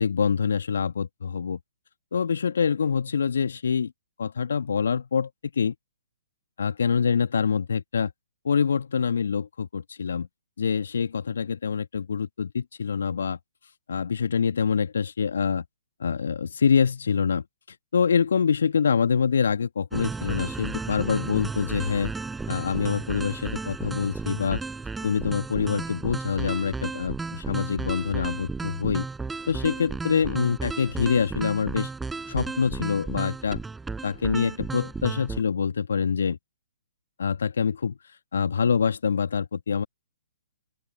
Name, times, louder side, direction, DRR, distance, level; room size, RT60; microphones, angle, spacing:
voice 1, 0.0-1.6 2.1-3.9 4.2-5.3 5.6-5.7 6.6-8.1 8.4-10.3 10.6-13.4 13.9-15.6 16.0-17.4 17.9-22.1 22.5-24.6 25.0-29.1 29.5-31.9 32.3-33.6 34.0-36.4 37.2-38.0 38.3-39.9, left 6 dB, 60° left, 1.7 m, -25 dB
sound 1, 19.9-35.4, right 4 dB, 5° right, 6.9 m, -34 dB
open air
figure-of-eight pair, 125°, 0 cm